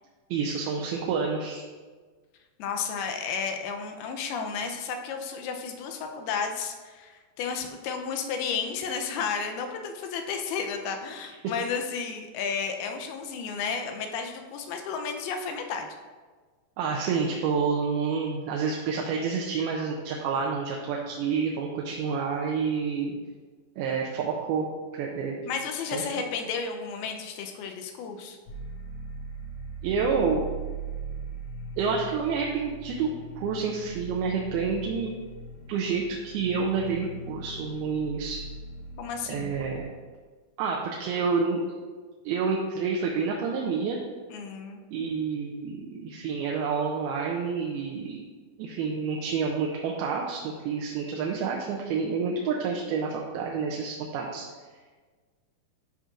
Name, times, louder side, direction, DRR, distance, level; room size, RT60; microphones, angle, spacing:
voice 1, 0.3-1.6 16.8-23.1 23.8-24.7 24.9-25.4 25.9-26.3 29.8-30.4 31.8-33.1 33.4-35.1 35.7-38.4 39.3-39.9 40.6-41.6 42.2-44.0 44.9-48.3 48.6-54.5, right 5 dB, 80° right, -1 dB, 2.5 m, -28 dB
voice 2, 2.6-15.9 25.5-28.4 39.0-39.5 44.3-44.8, left 6 dB, 85° left, 4 dB, 2.6 m, -32 dB
sound 1, 28.5-39.8, right 3 dB, 60° left, 2.2 m, -40 dB
12.0 x 5.4 x 2.5 m, 1.4 s
omnidirectional pair, 4.5 m